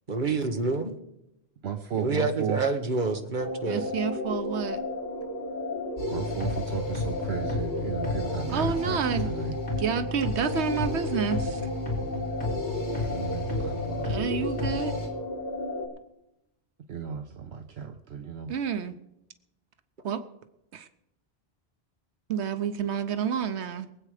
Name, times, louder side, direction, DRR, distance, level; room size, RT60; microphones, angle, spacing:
voice 1, 0.1-1.0 1.9-3.9, right 3 dB, 50° right, 5 dB, 1.6 m, -28 dB
voice 2, 1.6-2.6 6.1-9.6 12.9-14.4 16.9-18.5, right 8 dB, 70° right, 4 dB, 1.1 m, -35 dB
sound 1, 3.4-15.9, left 2 dB, 45° left, 2.9 m, -33 dB
voice 3, 3.7-4.8 8.5-9.3 9.8-11.6 14.0-14.9 18.5-18.9 20.0-20.2 20.7-20.9 22.3-23.9, right 7 dB, 90° right, 9 dB, 1.1 m, -29 dB
sound 2, 6.0-15.1, left 2 dB, 80° left, 4.1 m, -33 dB
23.0 x 8.5 x 4.9 m, 0.85 s
omnidirectional pair, 1.1 m